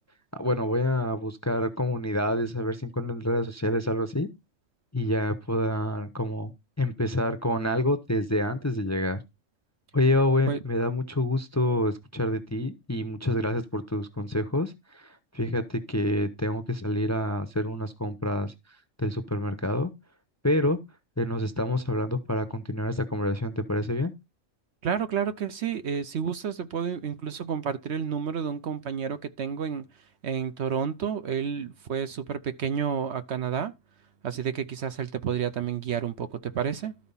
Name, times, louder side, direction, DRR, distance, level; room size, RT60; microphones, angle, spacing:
voice 1, 0.3-4.3 4.9-6.5 6.8-9.2 9.9-18.5 19.0-19.9 20.4-20.8 21.2-24.1, left 1 dB, 15° left, 0.6 m, -27 dB
voice 2, 24.8-29.8 30.2-33.7 34.2-37.0, right 7 dB, 65° right, 0.9 m, -30 dB
13.0 x 4.5 x 5.5 m
omnidirectional pair, 1.4 m